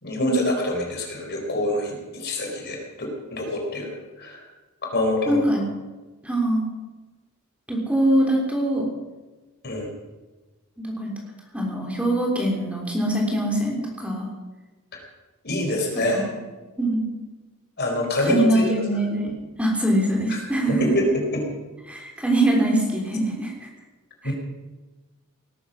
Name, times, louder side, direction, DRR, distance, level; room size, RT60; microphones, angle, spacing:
voice 1, 0.0-3.9 4.2-4.4 4.8-5.4 9.6-9.9 14.9-15.0 15.4-16.2 17.8-18.6 20.3-20.4 20.7-21.4 24.2-24.3, left 1 dB, 50° left, 1 dB, 4.3 m, -26 dB
voice 2, 5.3-5.6 6.2-6.6 7.7-8.9 10.8-11.1 11.5-14.3 16.3-16.4 16.8-17.1 18.3-19.3 19.6-20.9 21.9-23.7 24.2-24.3, right 1 dB, 5° right, -1 dB, 3.4 m, -23 dB
18.5 x 13.5 x 5.8 m, 1.2 s
head